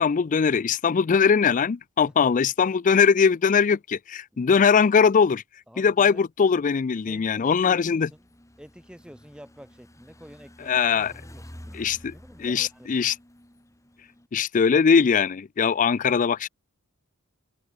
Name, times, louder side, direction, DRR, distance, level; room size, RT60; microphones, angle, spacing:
voice 1, 0.0-5.4 5.8-8.1 10.7-11.1 11.7-12.1 12.4-13.1 14.3-16.5, left 6 dB, 35° left, 0.4 m, -21 dB
voice 2, 5.7-6.2 7.1-8.2 8.6-12.9, equal, 5° right, 5.8 m, -49 dB
sound 1, 8.0-14.3, equal, 15° left, 2.4 m, -49 dB
head